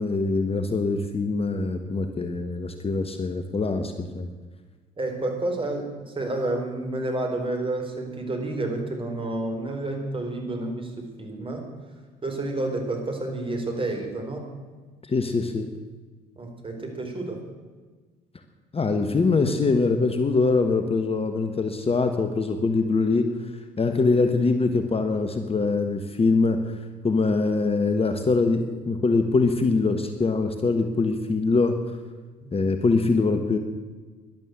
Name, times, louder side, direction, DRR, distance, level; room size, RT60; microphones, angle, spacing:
voice 1, 0.0-4.3 15.0-15.7 18.7-23.5 23.8-26.8 27.0-31.8 32.5-33.6, left 3 dB, 30° left, 7 dB, 1.4 m, -23 dB
voice 2, 5.0-11.6 12.2-14.5 16.4-17.4 23.8-23.9 32.4-32.5, right 2 dB, 25° right, 3 dB, 4.3 m, -30 dB
12.0 x 11.5 x 8.1 m, 1.4 s
hypercardioid pair, 60°, 20 cm